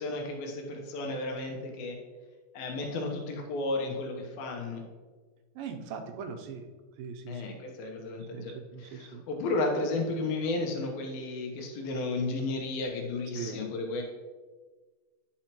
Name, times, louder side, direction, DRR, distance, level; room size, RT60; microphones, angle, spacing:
voice 1, 0.0-2.0 2.5-4.8 7.3-14.0, left 2 dB, 85° left, 2 dB, 2.9 m, -33 dB
voice 2, 5.6-6.7 7.0-7.6 8.3-9.2 13.3-13.6, right 6 dB, 85° right, 5 dB, 2.5 m, -40 dB
10.0 x 5.6 x 3.0 m, 1.4 s
omnidirectional pair, 4.1 m